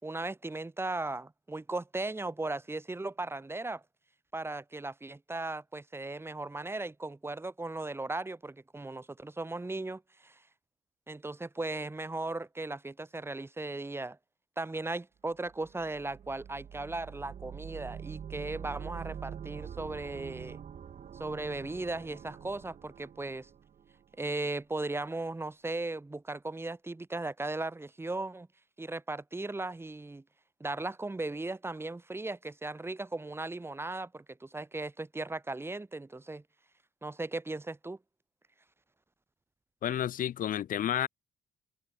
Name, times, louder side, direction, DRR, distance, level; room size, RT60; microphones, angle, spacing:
voice 1, 0.0-3.8 4.3-10.4 11.1-14.2 14.6-20.6 21.1-23.5 24.2-28.5 28.8-30.2 30.6-36.4 37.0-38.0, right 2 dB, 15° right, 4.5 m, -37 dB
sound 1, 15.5-24.3, right 8 dB, 55° right, 4.1 m, -45 dB
voice 2, 39.8-41.1, left 11 dB, 65° left, 1.2 m, -31 dB
cardioid pair, 105°, 15 cm